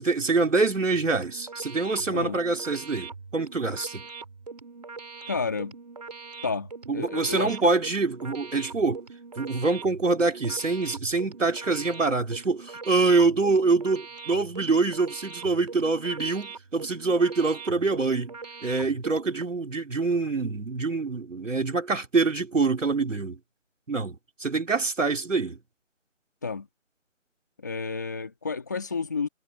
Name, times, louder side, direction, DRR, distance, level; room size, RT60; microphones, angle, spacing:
voice 1, 0.0-4.0 6.9-9.0 9.4-18.3 18.6-23.4 23.9-25.6, right 3 dB, 80° right, 3.3 m, -25 dB
sound 1, 0.9-19.4, right 4 dB, 30° right, 2.7 m, -42 dB
voice 2, 5.3-5.8 6.4-7.7 26.4-26.7 27.6-29.3, left 4 dB, 15° left, 1.8 m, -31 dB
figure-of-eight pair, 175°, 37 cm